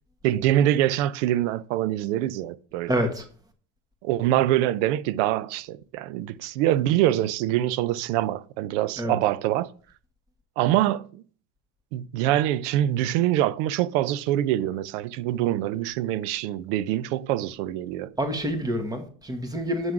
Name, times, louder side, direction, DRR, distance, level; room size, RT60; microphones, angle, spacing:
voice 1, 0.2-3.0 4.0-9.7 10.6-11.2 11.9-18.1, right 13 dB, 80° right, 0.6 m, -24 dB
voice 2, 2.9-3.2 9.0-9.2 18.2-19.9, equal, 10° right, 1.3 m, -27 dB
8.0 x 3.7 x 5.9 m
supercardioid pair, 125°, 35 cm